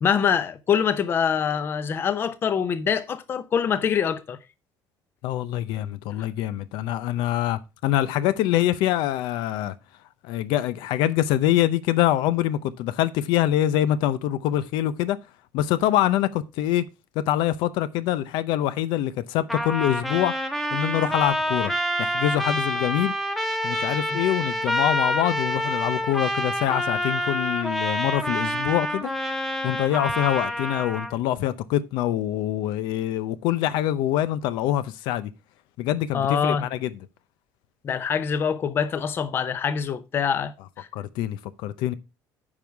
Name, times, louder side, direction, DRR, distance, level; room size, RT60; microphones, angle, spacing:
voice 1, 0.0-4.4 24.1-24.2 36.1-36.7 37.8-40.9, left 7 dB, 30° left, 0.7 m, -24 dB
voice 2, 5.2-9.7 10.2-15.2 15.5-16.9 17.1-20.3 20.7-21.7 22.0-23.1 23.6-29.1 29.6-35.3 35.8-36.9 40.9-41.9, left 13 dB, 80° left, 0.7 m, -25 dB
Trumpet, 19.5-31.1, equal, ahead, 1.1 m, -27 dB
9.8 x 5.5 x 4.6 m
cardioid pair, 175°, 8 cm